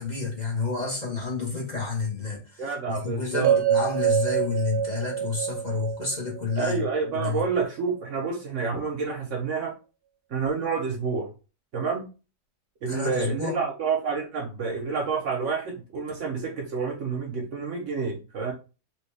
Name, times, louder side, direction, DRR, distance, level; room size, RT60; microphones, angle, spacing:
voice 1, 0.0-7.4 12.9-13.6, left 4 dB, 30° left, 1.1 m, -30 dB
voice 2, 2.6-3.6 6.6-9.7 10.3-11.3 11.7-12.1 12.8-18.5, right 5 dB, 60° right, 0.9 m, -29 dB
sound 1, 3.4-7.6, right 9 dB, 85° right, 1.1 m, -26 dB
3.1 x 3.1 x 3.2 m
omnidirectional pair, 1.6 m